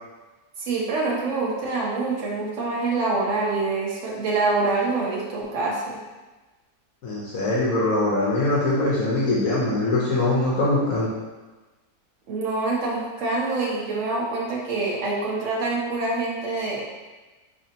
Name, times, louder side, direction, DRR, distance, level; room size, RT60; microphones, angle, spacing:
voice 1, 0.6-6.0 12.3-16.8, right 3 dB, 55° right, -4 dB, 1.1 m, -25 dB
voice 2, 7.0-11.1, left 2 dB, 70° left, -6 dB, 1.2 m, -22 dB
4.0 x 3.3 x 2.8 m, 1.2 s
omnidirectional pair, 1.6 m